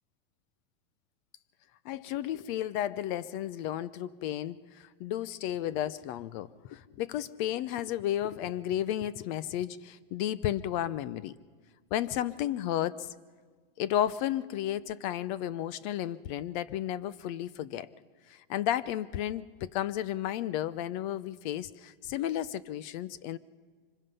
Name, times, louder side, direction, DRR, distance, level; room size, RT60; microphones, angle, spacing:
voice 1, 1.8-11.4 11.9-13.1 13.8-17.9 18.3-23.4, left 11 dB, 50° left, 18 dB, 0.7 m, -33 dB
25.0 x 21.5 x 5.6 m, 1.5 s
hypercardioid pair, 120°, 29 cm